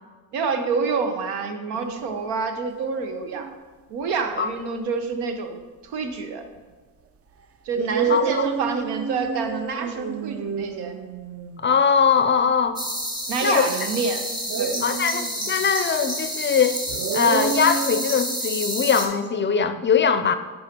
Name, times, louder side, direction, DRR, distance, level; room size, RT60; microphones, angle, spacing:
voice 1, 0.3-3.5 3.9-6.4 7.6-11.0 13.3-14.2 14.6-14.8, right 4 dB, 80° right, 6 dB, 0.9 m, -27 dB
sound 1, 1.7-2.1 3.0-3.6 6.6-6.7 7.7-11.7 14.5-15.7 16.9-18.1, right 6 dB, 35° right, 0.5 m, -29 dB
voice 2, 8.1-8.5 11.6-12.8 13.4-13.7 14.8-16.8 17.1-20.3, left 6 dB, 30° left, 10 dB, 0.4 m, -21 dB
sound 2, 12.8-19.1, equal, 10° right, 1.3 m, -29 dB
8.6 x 5.6 x 2.9 m, 1.4 s
supercardioid pair, 65°, 40 cm